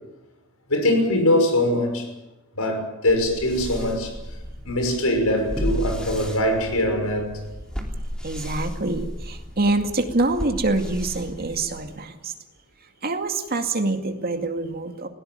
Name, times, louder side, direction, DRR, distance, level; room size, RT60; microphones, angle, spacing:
voice 1, 0.7-2.1 2.6-4.1 4.7-7.3, left 1 dB, 85° left, 5 dB, 6.0 m, -22 dB
sound 1, 3.1-12.0, equal, 5° left, 3.2 m, -34 dB
voice 2, 8.2-12.3 13.0-15.1, right 2 dB, 45° right, 6 dB, 2.3 m, -25 dB
20.5 x 18.0 x 9.3 m, 1.0 s
head